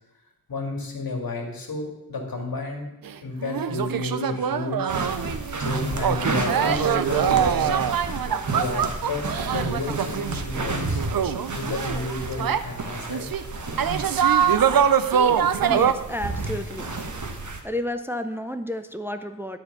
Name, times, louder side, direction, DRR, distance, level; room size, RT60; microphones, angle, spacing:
voice 1, 0.5-2.9 3.2-5.0 5.6-8.0 8.5-11.0 11.5-13.3, left 3 dB, 85° left, 1 dB, 2.0 m, -31 dB
sound 1, 3.0-3.1 3.4-12.6 13.1-13.4 13.8-15.9, right 8 dB, 85° right, 0.6 m, -23 dB
sound 2, 4.9-17.6, right 3 dB, 55° right, 1.2 m, -32 dB
voice 2, 15.6-16.9 17.4-19.6, left 1 dB, 5° right, 8 dB, 0.5 m, -31 dB
11.0 x 4.6 x 6.6 m, 0.92 s
wide cardioid pair, 85°, 34 cm